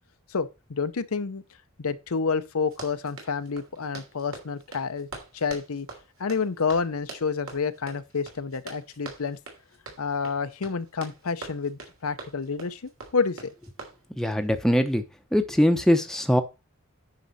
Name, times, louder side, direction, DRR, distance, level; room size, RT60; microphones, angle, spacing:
voice 1, 0.3-1.4 1.8-5.1 5.3-5.9 6.2-9.4 10.0-13.4, left 5 dB, 80° left, 0.7 m, -29 dB
Run, 2.6-14.5, right 3 dB, 70° right, 3.0 m, -44 dB
voice 2, 14.2-15.0 15.3-16.4, equal, ahead, 0.7 m, -22 dB
9.5 x 5.9 x 4.1 m
head